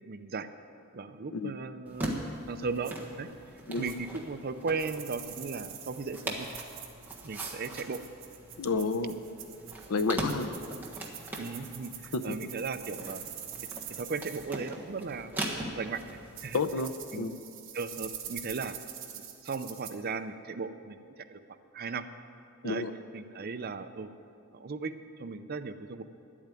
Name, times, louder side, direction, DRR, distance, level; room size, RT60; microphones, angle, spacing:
voice 1, 0.0-0.5 0.9-2.1 2.5-3.3 3.8-6.5 7.2-8.0 8.7-8.9 11.4-13.2 14.0-16.6 17.1-17.3 17.7-18.8 19.1-21.4 21.7-22.1 22.6-22.8 23.1-24.1 24.5-26.0, right 4 dB, 45° right, 9 dB, 0.5 m, -37 dB
sound 1, 1.9-16.9, right 1 dB, 10° right, 1.4 m, -41 dB
sound 2, 2.8-2.9 3.8-4.0 4.8-14.4 15.9-16.0 16.3-19.9, right 9 dB, 60° right, 1.3 m, -45 dB
voice 2, 8.6-9.1 9.9-10.5 12.1-12.2 16.5-17.3 22.6-22.9, left 4 dB, 85° left, 10 dB, 0.7 m, -30 dB
10.5 x 8.6 x 9.1 m, 2.5 s
head